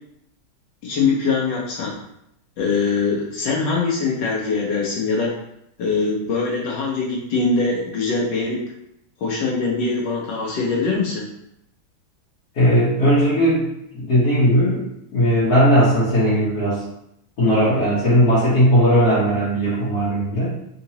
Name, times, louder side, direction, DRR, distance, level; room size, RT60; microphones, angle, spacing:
voice 1, 0.8-2.0 2.6-5.3 5.8-8.6 9.2-11.3, left 4 dB, 70° left, -3 dB, 1.2 m, -22 dB
voice 2, 12.5-13.7 13.9-14.8 15.1-16.8 17.4-20.5, equal, 55° left, -11 dB, 1.4 m, -17 dB
3.7 x 2.7 x 2.8 m, 0.78 s
omnidirectional pair, 2.2 m